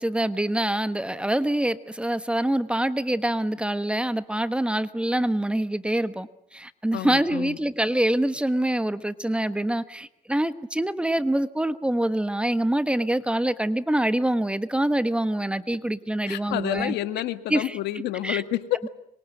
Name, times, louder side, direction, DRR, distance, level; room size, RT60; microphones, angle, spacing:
voice 1, 0.0-16.9 17.5-17.8 18.2-18.4, right 1 dB, 5° right, 12 dB, 1.2 m, -25 dB
voice 2, 6.9-7.6 16.3-18.8, left 14 dB, 85° left, 10 dB, 1.8 m, -29 dB
26.0 x 23.0 x 9.1 m, 0.75 s
cardioid pair, 110°, 17 cm